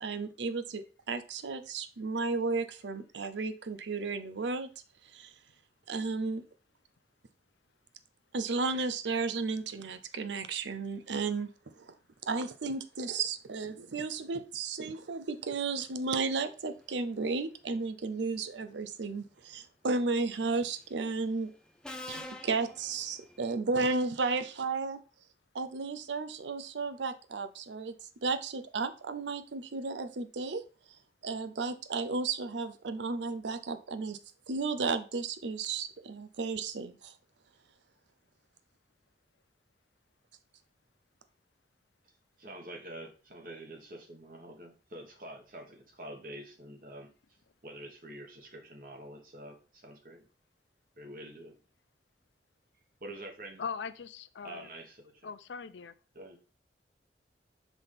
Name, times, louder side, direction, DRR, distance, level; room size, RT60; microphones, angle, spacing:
voice 1, 0.0-4.7 5.0-5.3 5.9-6.4 8.3-12.0 12.2-21.5 22.1-25.0 25.5-27.9 28.2-30.6 31.2-34.2 34.5-37.2, right 4 dB, 80° right, 11 dB, 0.6 m, -33 dB
Subway metro underground, 20.4-20.7 21.8-23.5, left 1 dB, 5° left, 0.5 m, -45 dB
voice 2, 42.4-47.1 47.6-50.3 50.9-51.6 53.0-53.6 54.4-55.3 56.1-56.5, right 1 dB, 50° right, 2 dB, 1.4 m, -46 dB
voice 3, 53.6-54.7 55.2-55.9, left 6 dB, 85° left, 13 dB, 0.5 m, -40 dB
6.0 x 3.5 x 5.7 m, 0.37 s
head